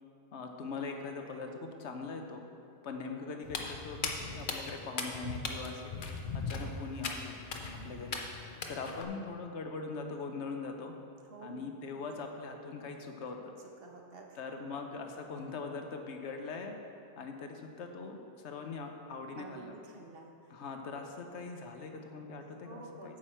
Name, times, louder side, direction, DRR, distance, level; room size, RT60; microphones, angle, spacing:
voice 1, 0.3-2.5 2.8-5.9 6.3-7.4 7.8-8.2 8.7-10.9 11.4-13.5 14.4-16.8 17.2-19.8 20.5-23.2, left 4 dB, 80° left, 4 dB, 1.1 m, -41 dB
Walk footsteps, 3.4-9.0, left 4 dB, 50° left, 0.9 m, -39 dB
voice 2, 7.6-8.0 11.2-12.0 13.8-14.8 19.4-20.3 22.6-23.2, right 3 dB, 60° right, 1 dB, 1.2 m, -50 dB
9.1 x 7.4 x 4.4 m, 2.6 s
omnidirectional pair, 1.1 m